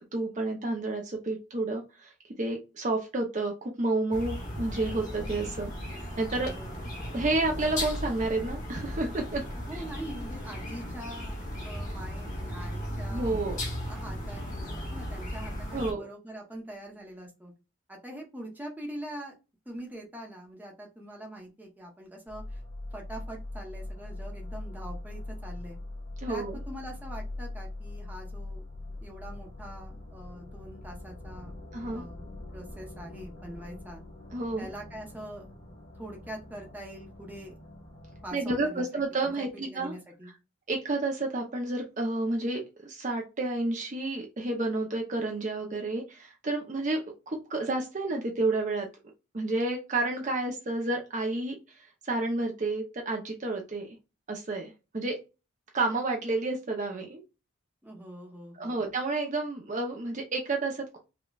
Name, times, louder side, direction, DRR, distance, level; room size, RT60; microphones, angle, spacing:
voice 1, 0.1-2.1 2.4-6.5 7.1-9.4 9.7-9.8 13.1-13.6 15.7-16.1 26.2-26.6 31.7-32.0 34.3-34.7 38.3-39.9 40.7-47.0 47.3-48.9 49.3-54.0 54.3-55.2 55.7-57.2 58.6-61.0, right 2 dB, 35° right, 2 dB, 0.6 m, -30 dB
sound 1, 4.1-15.9, equal, 40° left, 1.3 m, -36 dB
voice 2, 6.3-7.0 9.7-13.4 13.9-17.5 17.9-19.4 19.7-22.6 22.9-25.8 26.3-28.6 29.0-31.5 31.9-32.3 32.5-34.0 34.6-35.5 35.9-37.6 38.2-38.9 39.4-40.3 57.8-58.9, right 1 dB, 10° right, 0 dB, 0.8 m, -43 dB
sound 2, 22.3-38.3, left 2 dB, 60° left, 1.8 m, -42 dB
5.0 x 2.3 x 2.3 m, 0.28 s
head